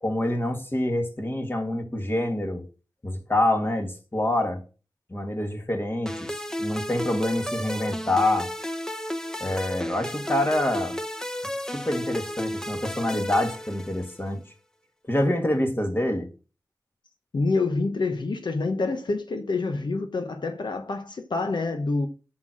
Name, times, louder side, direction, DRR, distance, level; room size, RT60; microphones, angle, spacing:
voice 1, 0.0-2.6 3.0-4.6 5.1-8.5 9.4-11.0 11.7-14.4 15.1-16.3, left 1 dB, 30° left, 2.0 m, -26 dB
sound 1, 6.1-14.3, equal, 10° left, 0.9 m, -33 dB
voice 2, 17.3-22.1, left 3 dB, 85° left, 1.0 m, -27 dB
7.4 x 6.2 x 6.3 m
wide cardioid pair, 70°, 8 cm